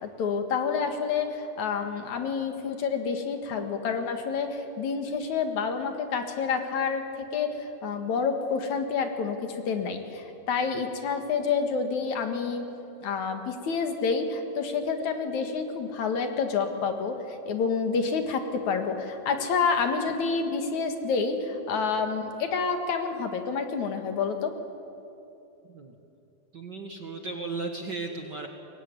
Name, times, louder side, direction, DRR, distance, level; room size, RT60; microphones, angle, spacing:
voice 1, 0.0-7.0 7.3-12.6 13.0-24.5, left 5 dB, 70° left, 5 dB, 3.1 m, -28 dB
voice 2, 26.5-28.5, right 3 dB, 45° right, 3 dB, 1.7 m, -35 dB
24.0 x 21.5 x 9.7 m, 2.8 s
omnidirectional pair, 3.6 m